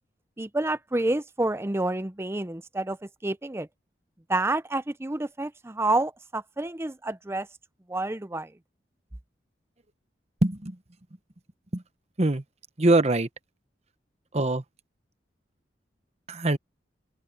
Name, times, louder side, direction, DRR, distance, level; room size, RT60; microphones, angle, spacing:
voice 1, 0.4-3.0 3.2-3.7 4.3-7.5 7.9-8.5, right 2 dB, 15° right, 0.6 m, -28 dB
voice 2, 10.4-10.8 11.7-11.8 12.2-12.4 12.8-13.3 14.3-14.6 16.3-16.6, right 2 dB, 35° right, 1.1 m, -23 dB
open air
head